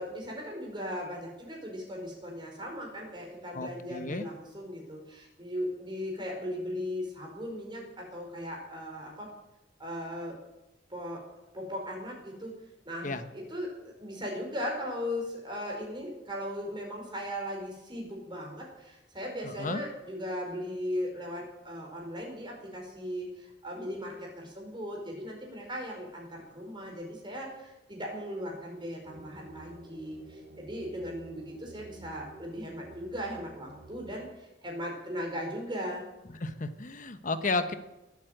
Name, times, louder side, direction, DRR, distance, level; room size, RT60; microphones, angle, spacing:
voice 1, 0.0-9.3 9.8-10.4 10.9-11.2 11.5-12.5 12.8-13.7 14.0-36.0, equal, 25° right, 0 dB, 4.9 m, -38 dB
voice 2, 3.5-4.2 13.0-13.2 19.4-19.8 36.4-37.7, left 3 dB, 45° left, 10 dB, 1.1 m, -32 dB
sound 1, 29.0-34.2, right 2 dB, 50° right, 4.4 m, -52 dB
19.5 x 8.6 x 7.9 m, 0.96 s
head